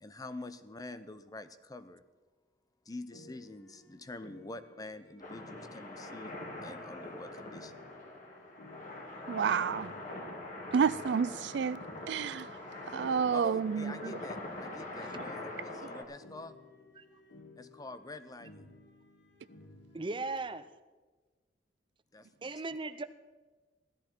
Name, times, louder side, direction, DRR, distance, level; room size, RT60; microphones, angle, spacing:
voice 1, 0.0-2.0 2.9-6.4 6.6-7.7 13.3-16.6 17.6-18.7 22.1-22.5, left 2 dB, 20° left, 0.6 m, -46 dB
sound 1, 3.1-20.5, left 1 dB, 70° left, 2.0 m, -56 dB
sound 2, 5.2-16.0, left 2 dB, 45° left, 2.2 m, -43 dB
voice 2, 9.3-9.9 10.7-11.8 12.1-12.5 12.9-14.2, right 6 dB, 65° right, 0.4 m, -30 dB
voice 3, 19.9-20.7 22.4-23.0, right 3 dB, 25° right, 0.6 m, -37 dB
16.5 x 13.0 x 4.5 m
head